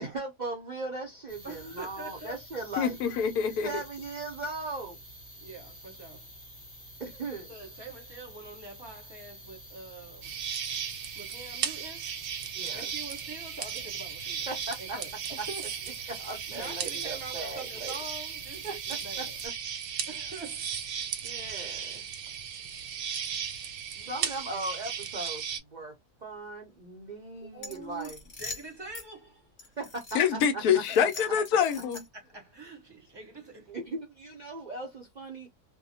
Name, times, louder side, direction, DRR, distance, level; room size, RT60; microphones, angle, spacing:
voice 1, 0.0-3.0 3.6-5.0 7.0-7.5 12.5-12.9 14.5-15.0 15.4-15.5 16.1-18.0 18.6-19.5 21.2-22.0 24.0-26.0 26.2-28.2 29.8-30.8 33.7-35.5, right 2 dB, 70° right, 0.4 m, -38 dB
sound 1, 1.3-19.5, right 1 dB, 5° left, 0.9 m, -49 dB
voice 2, 1.4-2.4 5.4-6.3 7.5-10.3 11.1-12.1 12.7-14.5 14.8-15.6 16.0-16.1 16.5-19.4 20.1-20.7 23.9-24.3 27.4-29.8 30.9-31.0 32.1-33.8, right 3 dB, 20° right, 0.7 m, -45 dB
voice 3, 2.8-3.7 30.1-32.0, left 8 dB, 80° left, 1.1 m, -25 dB
sound 2, 10.2-25.6, right 8 dB, 90° right, 1.2 m, -36 dB
sound 3, 27.6-29.1 29.6-30.5 30.8-32.3, left 3 dB, 40° left, 0.8 m, -43 dB
2.7 x 2.1 x 2.6 m
omnidirectional pair, 1.6 m